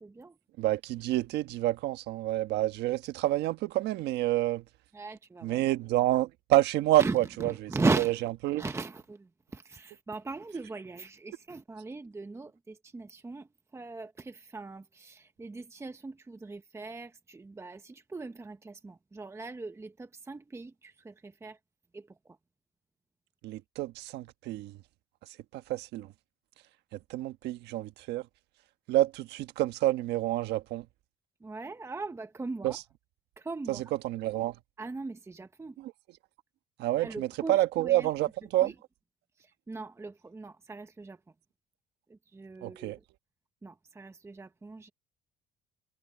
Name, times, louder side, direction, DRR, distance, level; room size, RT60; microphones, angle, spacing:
voice 1, 0.0-0.4 4.9-5.6 7.0-8.2 8.6-21.6 21.9-22.4 31.4-32.8 33.4-33.8 34.8-35.8 37.0-38.1 38.6-38.7 39.4-41.2 42.1-43.0 43.6-44.9, right 3 dB, 15° right, 0.9 m, -38 dB
voice 2, 0.6-4.6 5.4-7.7 8.0-8.1 8.4-8.6 23.4-24.8 25.2-26.1 26.9-28.3 28.9-30.9 32.6-32.8 33.7-34.6 35.8-35.9 36.8-38.7 42.6-43.0, right 15 dB, 85° right, 1.3 m, -28 dB
cardioid pair, 110°, 17 cm